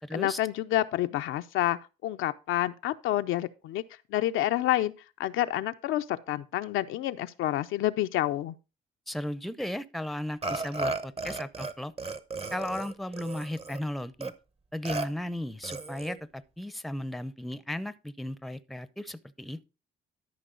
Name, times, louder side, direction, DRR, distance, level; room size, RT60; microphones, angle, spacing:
voice 1, 0.1-3.8 4.1-4.9 5.2-8.6, left 14 dB, 90° left, 0.6 m, -28 dB
voice 2, 9.1-11.9 12.5-14.3 14.7-19.6, left 1 dB, ahead, 0.6 m, -35 dB
Burping eructation, 10.4-11.7 12.0-13.8 14.2-14.3 14.8-15.1 15.6-16.2, right 3 dB, 30° right, 0.8 m, -34 dB
12.5 x 5.4 x 3.8 m
cardioid pair, 90°, 20 cm